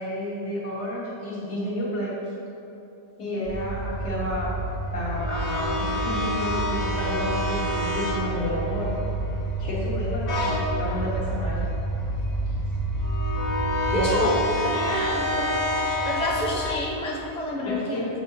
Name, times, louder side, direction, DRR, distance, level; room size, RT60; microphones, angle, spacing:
voice 1, 0.0-2.2 3.2-4.6 4.9-9.0 9.6-11.6 13.9-15.0 17.7-18.1, left 1 dB, 65° left, -6 dB, 1.6 m, -31 dB
sound 1, 3.4-16.7, equal, 85° left, 1.5 m, -27 dB
voice 2, 13.9-14.3 14.7-15.6 16.0-18.1, equal, 5° left, -4 dB, 0.5 m, -29 dB
7.4 x 2.7 x 5.4 m, 2.7 s
omnidirectional pair, 1.3 m